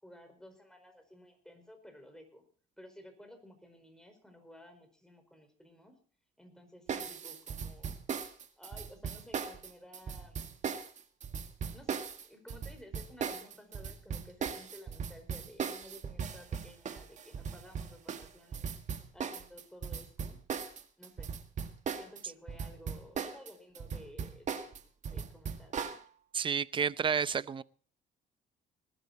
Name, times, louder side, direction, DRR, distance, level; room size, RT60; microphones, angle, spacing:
voice 1, 0.0-2.4 2.8-5.9 6.4-8.0 8.6-10.4 11.7-18.7 19.1-20.4 21.0-21.3 21.9-24.7 25.1-25.9, left 1 dB, 5° left, 4.8 m, -54 dB
sound 1, 6.9-22.2 22.5-26.0, right 6 dB, 45° right, 1.8 m, -38 dB
voice 2, 26.3-27.6, right 6 dB, 30° right, 0.6 m, -30 dB
20.5 x 12.0 x 4.1 m
cardioid pair, 110°, 17 cm